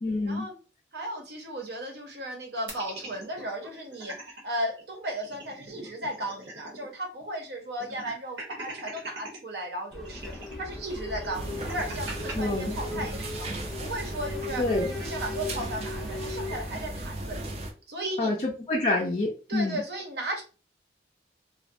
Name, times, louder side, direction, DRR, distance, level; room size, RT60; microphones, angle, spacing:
voice 1, 0.0-0.5 12.3-12.8 14.6-14.9 18.2-19.8, left 2 dB, 35° left, -1 dB, 0.4 m, -27 dB
voice 2, 0.9-4.2 4.4-10.3 10.6-13.5 13.8-17.5 17.9-18.4 19.5-20.4, right 1 dB, 65° right, 2 dB, 0.7 m, -35 dB
sound 1, 2.7-4.4 4.8-4.9 5.1-6.9 7.2-7.3 7.8-9.4 10.0-12.3, right 1 dB, 85° right, 1.0 m, -42 dB
sound 2, 9.9-16.6, left 2 dB, ahead, 0.7 m, -38 dB
sound 3, 11.3-17.7, right 1 dB, 35° right, 0.4 m, -36 dB
2.4 x 2.1 x 2.5 m, 0.35 s
head